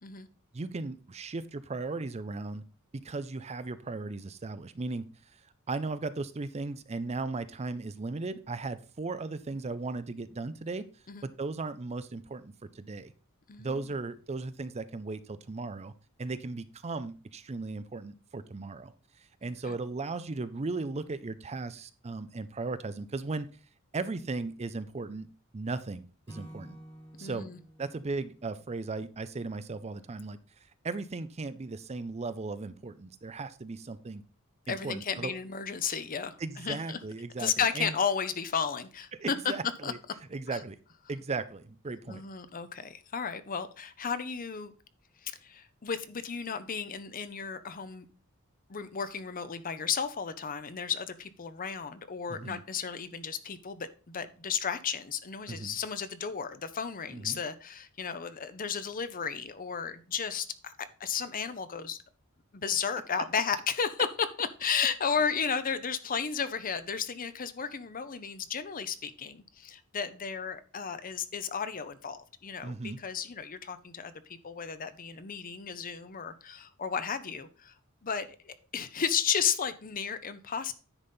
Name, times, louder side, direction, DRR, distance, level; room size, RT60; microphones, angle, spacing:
voice 1, 0.5-2.6 3.0-5.1 5.3-10.9 11.2-13.1 13.6-15.9 16.2-18.9 19.4-23.5 23.9-25.3 25.5-26.8 27.2-27.5 27.8-30.4 30.8-34.2 34.7-35.3 36.4-38.0 39.2-40.0 40.3-40.8 41.1-42.2 52.3-52.6 55.5-55.8 57.1-57.4 72.6-73.0, right 3 dB, 30° right, 13 dB, 0.5 m, -36 dB
voice 2, 19.4-19.7 27.2-27.6 34.7-37.0 37.4-39.4 39.8-39.9 40.5-40.6 42.1-44.7 45.2-48.0 48.7-60.7 61.0-62.0 62.5-64.1 64.4-74.1 74.4-77.7 78.0-80.7, left 6 dB, 40° left, 12 dB, 0.7 m, -33 dB
Acoustic guitar / Strum, 26.3-29.6, right 1 dB, 25° left, 1.7 m, -52 dB
9.9 x 4.2 x 5.4 m, 0.37 s
head